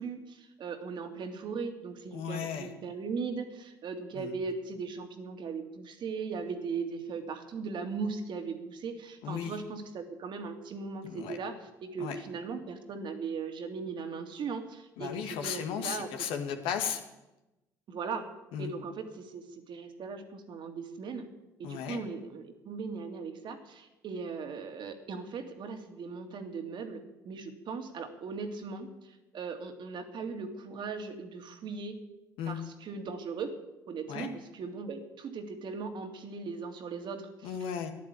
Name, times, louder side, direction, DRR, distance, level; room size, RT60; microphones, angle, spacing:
voice 1, 0.0-16.1 17.9-18.3 18.6-21.3 21.6-28.9 29.3-32.0 32.5-33.5 33.9-37.6, right 5 dB, 55° right, 5 dB, 2.4 m, -38 dB
voice 2, 2.1-2.7 4.2-4.3 9.2-9.5 11.0-11.4 12.0-12.2 15.0-17.0 18.5-18.7 21.6-22.0 32.4-32.6 34.1-34.3 37.4-37.9, left 8 dB, 65° left, 6 dB, 1.9 m, -35 dB
14.0 x 10.5 x 8.4 m, 0.99 s
figure-of-eight pair, 50°, 10 cm